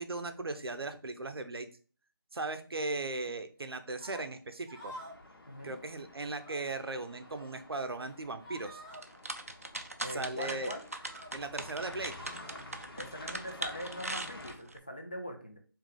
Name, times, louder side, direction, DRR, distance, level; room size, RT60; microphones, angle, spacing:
voice 1, 0.0-1.7 2.3-4.9 5.6-8.8 10.1-10.7 11.3-12.2, right 2 dB, 85° right, 8 dB, 0.7 m, -37 dB
sound 1, 3.9-4.2 4.6-5.2 5.5-5.8 6.1-6.6 7.1-7.6 7.9-8.1 8.4-9.0 10.1-10.2 10.9-11.3 11.7-12.6 13.3-13.8, right 1 dB, 5° left, 1.2 m, -50 dB
sound 2, 4.8-14.6, left 2 dB, 75° left, 1.1 m, -51 dB
sound 3, 8.9-14.8, right 2 dB, 40° right, 0.4 m, -40 dB
voice 2, 10.0-10.9 12.9-15.6, equal, 20° left, 2 dB, 0.4 m, -42 dB
3.7 x 2.7 x 3.7 m, 0.38 s
figure-of-eight pair, 175°, 12 cm